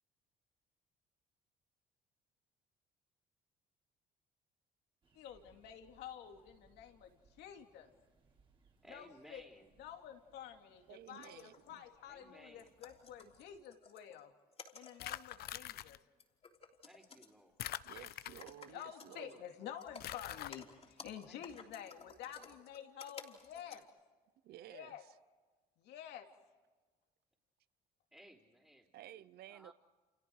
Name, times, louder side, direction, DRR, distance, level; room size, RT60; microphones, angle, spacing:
sound 1, 5.0-13.6, right 4 dB, 30° right, 3.6 m, -72 dB
voice 1, 5.1-7.9 8.9-9.4 9.8-14.3 14.7-16.0 18.6-23.8 24.7-25.0 25.8-26.3, left 9 dB, 85° left, 2.7 m, -50 dB
voice 2, 8.8-9.7 12.1-12.7 16.8-17.7 18.7-19.4 21.2-22.2 28.1-29.7, right 1 dB, 5° right, 3.6 m, -61 dB
sound 2, 10.9-11.8 12.2-12.3 12.6-14.2 14.5-15.4 15.7-15.8 16.2-17.3 17.6-17.9 18.3-19.4 19.7-23.8, left 5 dB, 35° left, 3.5 m, -56 dB
voice 3, 10.9-11.9 17.8-19.4 24.4-25.0 28.9-29.7, right 13 dB, 70° right, 0.8 m, -54 dB
sound 3, 15.0-16.0 17.6-18.7 20.0-20.5, left 14 dB, 65° left, 0.7 m, -44 dB
29.5 x 29.0 x 4.8 m
cardioid pair, 110°, 17 cm